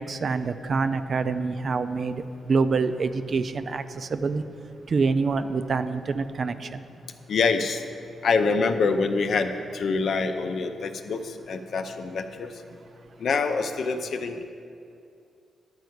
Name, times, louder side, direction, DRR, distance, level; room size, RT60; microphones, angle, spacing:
voice 1, 0.0-4.4 4.9-6.8, right 4 dB, 50° right, 11 dB, 0.4 m, -26 dB
voice 2, 7.3-7.8 8.2-12.5 13.2-14.4, left 4 dB, 65° left, 7 dB, 0.6 m, -25 dB
10.5 x 4.6 x 7.9 m, 2.4 s
cardioid pair, 100°, 0 cm